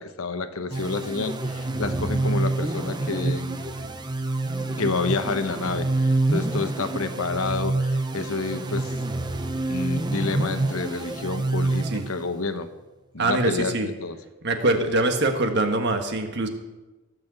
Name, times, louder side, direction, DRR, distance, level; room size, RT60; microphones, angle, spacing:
voice 1, 0.0-3.6 4.8-8.9 9.7-12.7 13.1-14.2, left 3 dB, 75° left, 9 dB, 1.1 m, -29 dB
sound 1, 0.7-12.5, right 2 dB, 20° right, 0.8 m, -27 dB
voice 2, 13.2-13.9 14.4-16.5, right 2 dB, 50° right, 5 dB, 1.5 m, -23 dB
18.0 x 6.5 x 8.0 m, 1.1 s
head